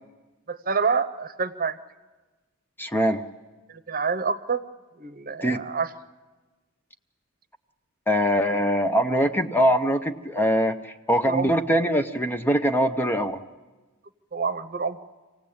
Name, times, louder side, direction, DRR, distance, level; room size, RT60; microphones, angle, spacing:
voice 1, 0.5-1.8 3.7-4.6 5.0-5.9 11.3-11.5 14.3-15.0, right 5 dB, 45° right, 9 dB, 0.9 m, -27 dB
voice 2, 2.8-3.2 5.4-5.6 8.1-13.4, equal, 10° left, 7 dB, 0.7 m, -22 dB
26.0 x 18.0 x 8.7 m, 1.2 s
head